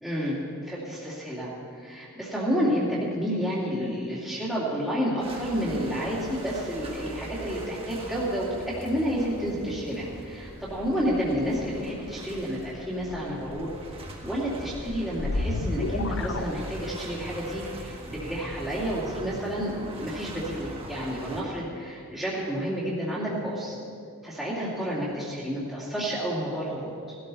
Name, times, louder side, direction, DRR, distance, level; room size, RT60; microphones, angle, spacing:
voice 1, 0.0-1.5 1.8-13.7 14.2-23.8 24.2-27.2, equal, ahead, -9 dB, 2.5 m, -30 dB
sound 1, 5.2-21.4, right 1 dB, 25° right, 1.7 m, -41 dB
sound 2, 14.5-17.2, left 2 dB, 55° left, 0.7 m, -31 dB
19.0 x 13.0 x 4.1 m, 2.5 s
head